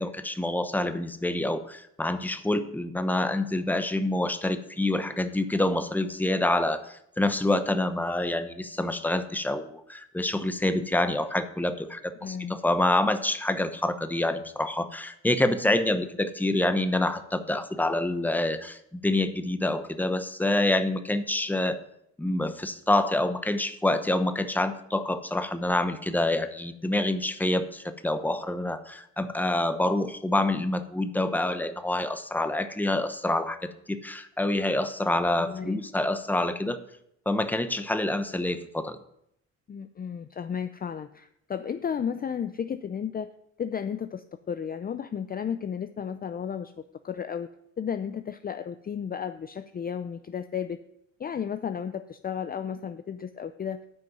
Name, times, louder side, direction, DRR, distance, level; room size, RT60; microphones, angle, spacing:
voice 1, 0.0-21.8 22.2-33.6 33.9-36.8 37.3-39.0, left 1 dB, 5° left, 10 dB, 0.8 m, -27 dB
voice 2, 12.2-12.6 35.3-35.8 39.7-43.3 43.6-46.7 47.0-47.5 47.8-50.8 51.2-53.8, left 7 dB, 30° left, 10 dB, 0.5 m, -33 dB
9.5 x 5.3 x 7.9 m, 0.76 s
cardioid pair, 90°, 30 cm